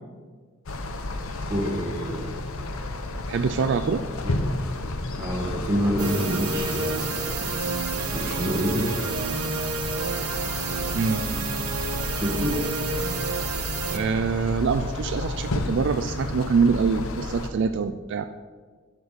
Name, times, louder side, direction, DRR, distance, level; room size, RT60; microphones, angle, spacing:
sound 1, 0.7-17.5, left 2 dB, 65° left, 0.8 m, -32 dB
voice 1, 1.5-2.3 4.2-4.3 5.2-7.2 8.1-8.9 12.1-12.6, equal, 15° right, -3 dB, 1.8 m, -27 dB
voice 2, 3.3-4.0 10.9-11.3 13.9-18.3, right 5 dB, 55° right, 9 dB, 0.3 m, -24 dB
sound 2, 6.0-14.0, right 4 dB, 75° right, 1.1 m, -30 dB
11.5 x 6.6 x 4.1 m, 1.5 s
head